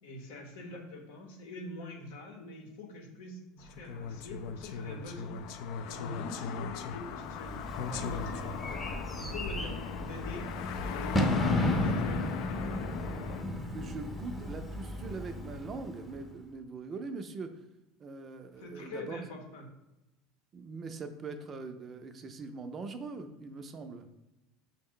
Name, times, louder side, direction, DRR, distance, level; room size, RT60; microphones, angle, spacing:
voice 1, 0.0-5.4 5.8-7.6 7.9-8.8 9.2-10.6 10.9-12.3 18.6-19.7, left 2 dB, 80° left, 2 dB, 0.8 m, -44 dB
sound 1, 3.6-13.4, left 6 dB, 65° left, 0.3 m, -39 dB
Bird / Fireworks, 7.1-16.3, left 1 dB, 10° left, 0.6 m, -34 dB
voice 2, 13.7-17.5 18.0-19.2 20.5-24.1, right 4 dB, 35° right, 8 dB, 0.4 m, -42 dB
5.3 x 2.1 x 3.7 m, 0.98 s
hypercardioid pair, 95°, 0 cm